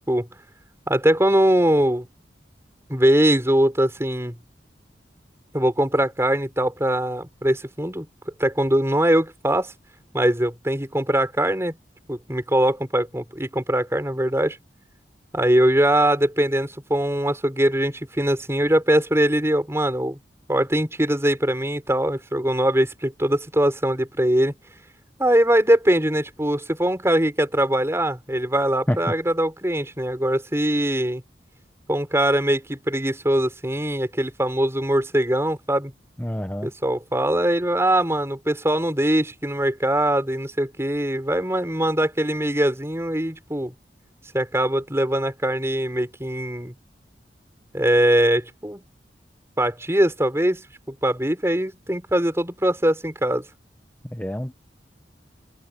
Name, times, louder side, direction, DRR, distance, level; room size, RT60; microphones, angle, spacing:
voice 1, 0.9-2.1 2.9-4.3 5.5-8.1 8.4-9.7 10.1-11.8 12.1-14.6 15.3-20.2 20.5-24.5 25.2-31.2 31.9-35.9 36.6-43.7 44.3-46.7 47.7-48.8 49.6-53.4, right 1 dB, 15° right, 6.4 m, -22 dB
voice 2, 36.2-36.7 54.1-54.5, equal, 10° left, 1.3 m, -27 dB
open air
head